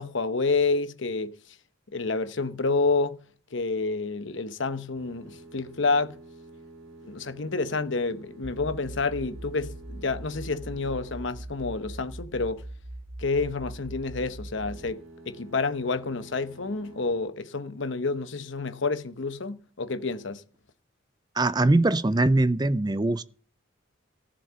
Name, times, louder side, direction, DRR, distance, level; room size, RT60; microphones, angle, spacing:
voice 1, 0.0-1.3 1.9-3.2 3.5-6.1 7.1-12.6 13.2-20.4, left 3 dB, 70° left, 0.9 m, -29 dB
sound 1, 4.9-11.8 14.4-17.2, right 2 dB, 90° right, 1.7 m, -49 dB
sound 2, 8.4-14.9, right 1 dB, 45° right, 5.2 m, -41 dB
voice 2, 21.4-23.2, right 2 dB, 20° right, 0.5 m, -22 dB
14.5 x 7.3 x 6.9 m
head